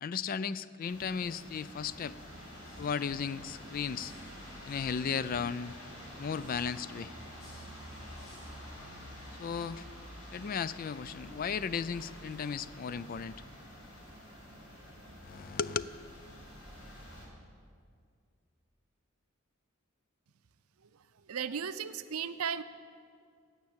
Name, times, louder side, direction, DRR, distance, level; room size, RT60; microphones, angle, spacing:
voice 1, 0.0-2.2 2.8-4.1 4.7-5.8 6.2-7.1 9.4-9.9 10.3-13.4 15.2-15.9, left 6 dB, 40° left, 16 dB, 0.3 m, -35 dB
sound 1, 0.8-17.3, equal, 80° left, 3.6 m, -48 dB
voice 2, 21.3-22.6, right 7 dB, 90° right, 13 dB, 0.6 m, -35 dB
15.5 x 5.8 x 8.8 m, 2.2 s
head